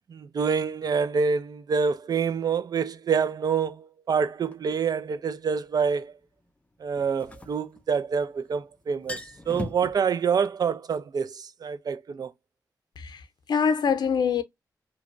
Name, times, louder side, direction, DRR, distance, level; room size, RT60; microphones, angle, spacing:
voice 1, 0.1-6.1 6.8-12.3, right 6 dB, 65° right, 0.4 m, -27 dB
sound 1, 4.5-4.6 7.0-8.3 8.6-8.7 8.9-9.9, left 2 dB, 20° left, 0.5 m, -37 dB
voice 2, 13.0-14.4, left 6 dB, 75° left, 0.6 m, -25 dB
2.9 x 2.2 x 2.4 m
cardioid pair, 75°, 7 cm